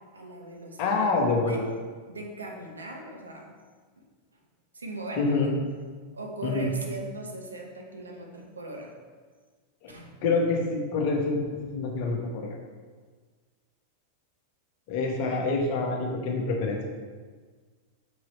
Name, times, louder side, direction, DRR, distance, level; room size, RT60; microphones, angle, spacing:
voice 1, 0.0-1.1 1.4-1.6 2.1-3.5 4.7-5.6 6.1-8.9 9.9-10.2, right 2 dB, 75° right, 1 dB, 1.0 m, -39 dB
voice 2, 0.8-1.6 5.2-5.5 6.4-6.7 9.8-9.9 10.2-11.4 11.7-12.6 14.9-16.8, left 3 dB, 45° left, 1 dB, 1.2 m, -26 dB
6.0 x 4.7 x 4.1 m, 1.5 s
figure-of-eight pair, 90°, 0 cm